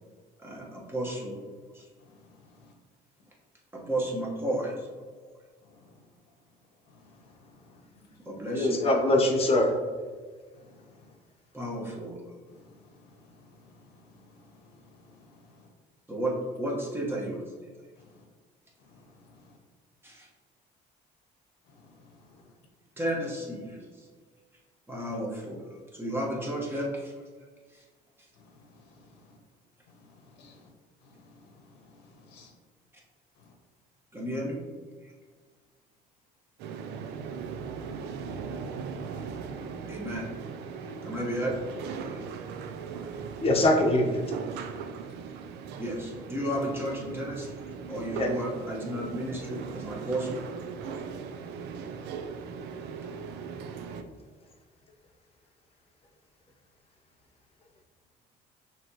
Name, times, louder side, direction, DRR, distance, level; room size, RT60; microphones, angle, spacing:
voice 1, 0.4-1.9 3.7-4.9 5.2-5.3 8.2-8.8 11.5-12.2 16.1-17.4 20.0-20.3 23.0-23.8 24.9-27.8 34.1-34.6 35.0-35.1 39.9-40.3 40.8-41.5 41.9-42.2 45.8-50.4 50.8-50.9, right 1 dB, 15° right, -3 dB, 1.2 m, -33 dB
voice 2, 2.0-2.7 5.7-5.9 6.9-7.8 10.5-11.1 12.5-15.7 18.0-18.1 18.8-19.5 21.7-22.4 28.4-29.4 29.9-30.7 31.0-32.5 33.4-33.5 42.2-42.5 42.9-43.4, left 3 dB, 90° left, 2 dB, 0.9 m, -57 dB
voice 3, 8.5-9.7 43.4-44.2 48.1-48.3, left 1 dB, 35° left, 1 dB, 0.8 m, -23 dB
sound 1, 36.6-54.0, right 6 dB, 80° right, 0.4 m, -39 dB
6.0 x 3.0 x 2.9 m, 1.5 s
cardioid pair, 110°, 17 cm